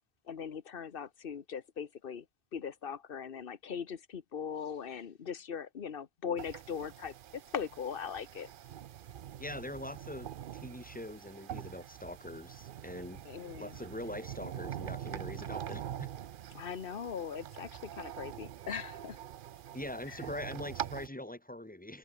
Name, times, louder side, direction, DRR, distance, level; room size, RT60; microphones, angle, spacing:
voice 1, 0.3-2.2 2.5-8.5 13.2-13.8 16.5-19.2 20.1-20.2, left 7 dB, 55° left, 1.2 m, -40 dB
sound 1, 6.4-21.1, right 10 dB, 60° right, 0.7 m, -44 dB
voice 2, 9.4-13.2 13.6-16.1 19.7-22.0, left 1 dB, 10° left, 1.1 m, -43 dB
omnidirectional pair, 1.1 m